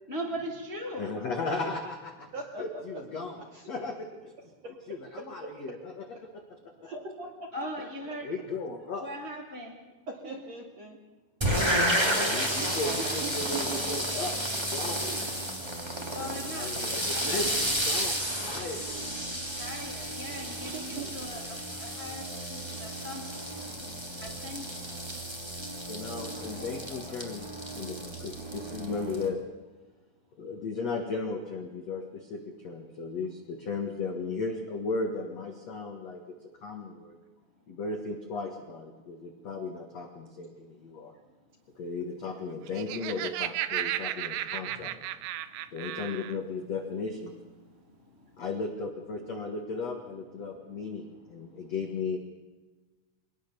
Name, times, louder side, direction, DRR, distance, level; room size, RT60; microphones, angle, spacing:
voice 1, 0.1-1.0 7.5-8.3 9.0-9.8 10.2-10.4 16.1-16.7 17.1-17.8 19.5-23.5 24.2-24.9 26.4-27.2 44.7-44.9 47.8-48.3 51.5-51.7, equal, 50° left, 0 dB, 0.7 m, -40 dB
voice 2, 1.0-2.3 2.6-3.4 3.7-4.3 4.9-6.0 6.3-6.4 6.8-6.9 8.2-9.1 12.1-15.0 16.5-18.2 18.4-18.8 20.3-20.4 24.2-24.3 25.9-27.5 27.7-29.4 30.4-36.3 36.6-37.2 37.7-41.1 41.8-45.1 45.7-47.3 48.4-52.2, left 3 dB, 75° left, 3 dB, 1.5 m, -36 dB
voice 3, 2.3-3.7 4.6-4.8 5.4-5.8 6.8-7.7 10.1-11.0 13.2-15.6 16.0-16.1 20.6-21.1, right 3 dB, 50° right, 2 dB, 2.2 m, -42 dB
sound 1, 11.4-29.3, equal, 10° right, 1.1 m, -32 dB
Laughter, 42.5-46.4, right 13 dB, 80° right, 2.5 m, -34 dB
23.5 x 19.5 x 6.9 m, 1.2 s
omnidirectional pair, 6.0 m